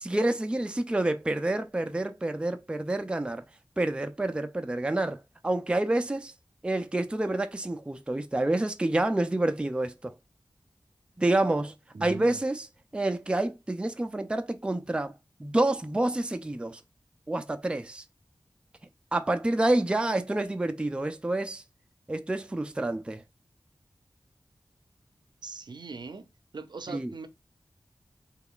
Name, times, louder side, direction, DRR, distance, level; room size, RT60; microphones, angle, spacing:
voice 1, 0.0-3.4 3.8-6.3 6.6-10.1 11.2-11.7 12.0-12.7 12.9-15.1 15.4-16.8 17.3-18.0 19.1-21.6 22.1-23.2 26.9-27.1, right 2 dB, 15° right, 0.4 m, -28 dB
voice 2, 11.9-12.4 25.4-26.3 26.5-27.3, right 4 dB, 65° right, 0.5 m, -40 dB
3.2 x 2.3 x 3.6 m
wide cardioid pair, 70°, 8 cm